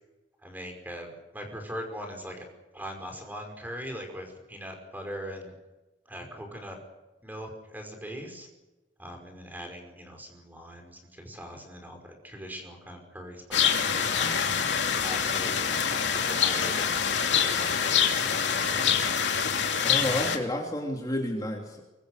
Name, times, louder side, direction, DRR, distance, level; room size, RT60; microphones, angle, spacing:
voice 1, 0.4-2.4 2.7-5.5 6.1-6.8 7.2-8.5 9.0-14.4 15.0-19.0, equal, 10° right, 4 dB, 5.4 m, -41 dB
sound 1, 13.5-20.4, left 7 dB, 75° left, 2.8 m, -25 dB
voice 2, 19.8-21.8, left 1 dB, 20° left, 1 dB, 3.0 m, -30 dB
24.0 x 23.5 x 6.6 m, 1.1 s
head